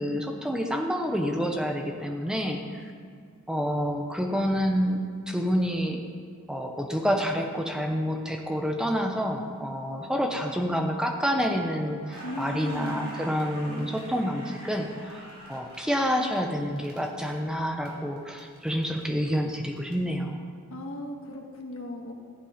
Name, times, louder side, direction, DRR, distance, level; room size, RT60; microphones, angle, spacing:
voice 1, 0.0-2.9 3.5-5.0 5.3-6.0 6.5-15.2 15.5-20.4, equal, 5° right, 3 dB, 0.8 m, -28 dB
Crackle, 12.0-17.9 18.2-19.9, right 1 dB, 85° right, 3.3 m, -45 dB
voice 2, 12.2-13.1 20.7-22.1, left 1 dB, 70° left, 1 dB, 1.6 m, -36 dB
14.5 x 7.6 x 5.1 m, 2.2 s
head